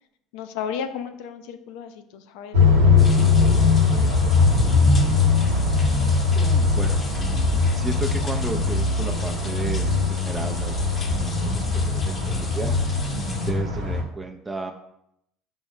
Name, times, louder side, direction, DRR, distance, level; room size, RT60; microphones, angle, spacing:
voice 1, 0.3-4.5, left 7 dB, 75° left, 8 dB, 0.4 m, -35 dB
sound 1, 2.5-14.0, left 4 dB, 90° right, 0.8 m, -20 dB
sound 2, 3.0-13.5, left 4 dB, 35° left, 0.7 m, -39 dB
voice 2, 6.3-7.0 7.7-12.8 13.5-14.7, right 2 dB, 15° right, 3 dB, 0.4 m, -33 dB
5.3 x 2.1 x 4.7 m, 0.78 s
supercardioid pair, 80°, 0 cm